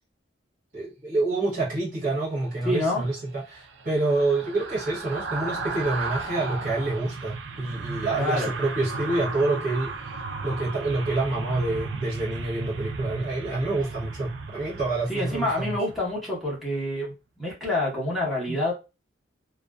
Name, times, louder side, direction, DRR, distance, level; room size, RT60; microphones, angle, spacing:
voice 1, 0.7-15.8 18.5-18.6, right 2 dB, 45° right, 0.8 m, -27 dB
voice 2, 2.6-3.1 8.1-8.5 15.1-18.7, left 1 dB, ahead, 0.9 m, -27 dB
sound 1, 2.8-16.2 16.5-16.7, right 4 dB, 70° right, 0.4 m, -35 dB
2.4 x 2.2 x 2.2 m
head